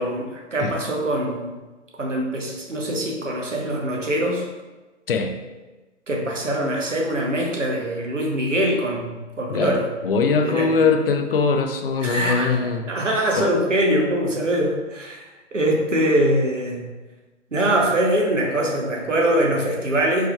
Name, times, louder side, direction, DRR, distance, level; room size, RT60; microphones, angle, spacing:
voice 1, 0.0-1.6 2.0-4.4 6.1-9.9 10.4-10.9 12.0-15.3 15.5-16.9 17.5-20.3, right 1 dB, 85° right, 0 dB, 0.9 m, -23 dB
voice 2, 5.1-5.4 9.5-12.9 13.3-13.5, left 4 dB, 50° left, 5 dB, 0.4 m, -22 dB
4.7 x 2.9 x 2.2 m, 1.2 s
figure-of-eight pair, 125°, 36 cm